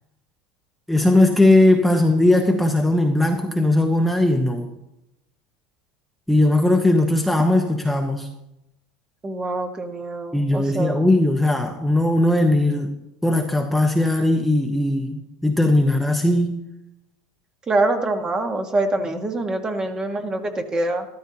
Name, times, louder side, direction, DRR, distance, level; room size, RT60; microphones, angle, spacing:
voice 1, 0.9-4.7 6.3-8.3 10.3-12.9 13.2-16.6, left 1 dB, ahead, 2 dB, 1.2 m, -18 dB
voice 2, 9.2-11.0 17.7-21.1, right 2 dB, 25° right, 5 dB, 1.6 m, -25 dB
13.5 x 13.0 x 2.9 m, 0.85 s
supercardioid pair, 100°, 3 cm